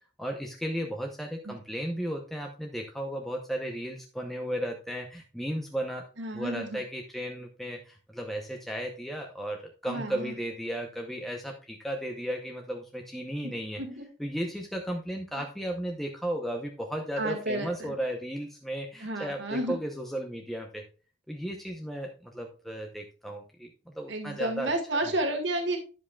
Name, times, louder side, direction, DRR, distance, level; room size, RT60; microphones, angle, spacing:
voice 1, 0.2-6.1 6.3-13.8 14.2-20.8 21.3-24.7 25.1-25.2, equal, ahead, 1 dB, 0.7 m, -35 dB
voice 2, 6.2-6.8 9.9-10.3 13.4-13.5 13.8-14.0 17.2-17.9 19.0-19.7 24.1-25.8, right 1 dB, 65° right, 4 dB, 1.8 m, -31 dB
11.0 x 7.4 x 2.3 m, 0.35 s
head